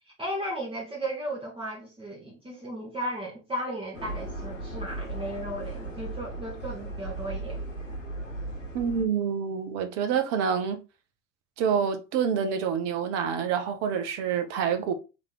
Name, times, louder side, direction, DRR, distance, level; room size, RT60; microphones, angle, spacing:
voice 1, 0.2-7.6, right 1 dB, 15° right, 1.2 m, -35 dB
sound 1, 3.9-9.1, right 2 dB, 80° left, 0.9 m, -36 dB
voice 2, 8.7-10.8 11.6-14.9, right 7 dB, 45° right, 0.8 m, -27 dB
3.2 x 3.0 x 3.8 m
figure-of-eight pair, 75°, 37 cm